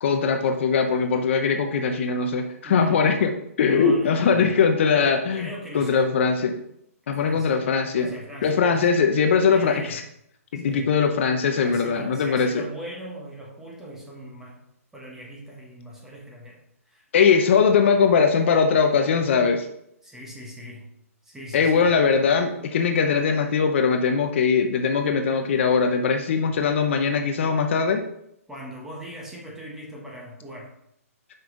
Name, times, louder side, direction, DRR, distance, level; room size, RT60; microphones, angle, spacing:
voice 1, 0.0-3.3 3.6-5.5 5.7-6.5 7.1-8.1 8.4-10.0 10.5-12.5 17.1-19.7 21.5-28.0, left 5 dB, 50° left, 5 dB, 0.7 m, -21 dB
voice 2, 2.6-3.2 3.7-4.5 5.0-6.1 7.2-7.5 7.9-8.9 9.5-10.0 10.6-10.9 11.6-14.6 14.9-17.0 20.0-20.9 21.2-21.9 28.5-30.7, equal, 5° right, -2 dB, 1.3 m, -40 dB
5.7 x 5.5 x 3.9 m, 0.76 s
hypercardioid pair, 150°, 8 cm